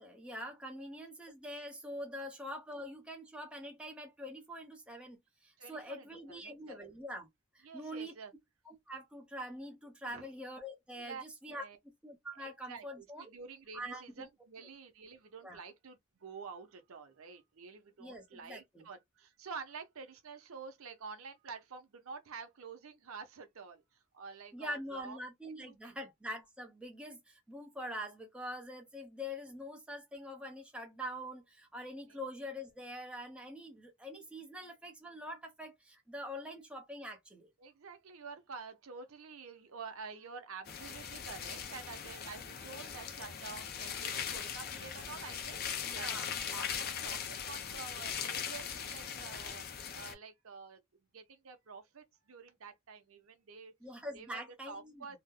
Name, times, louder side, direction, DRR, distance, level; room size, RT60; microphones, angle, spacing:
voice 1, 0.0-7.3 7.5-8.1 8.6-13.3 13.7-14.3 15.4-15.6 18.0-18.9 24.5-37.5 45.8-46.3 53.8-55.2, equal, 5° right, 0.7 m, -44 dB
voice 2, 5.6-6.8 7.6-8.3 10.1-10.3 11.0-11.2 11.5-11.8 12.4-23.8 24.1-25.2 25.5-25.9 37.6-46.2 46.5-49.6 49.9-50.8 51.1-53.7 54.1-55.2, right 5 dB, 90° right, 0.7 m, -49 dB
sound 1, 40.7-50.1, left 7 dB, 45° left, 0.5 m, -40 dB
2.9 x 2.1 x 3.5 m
head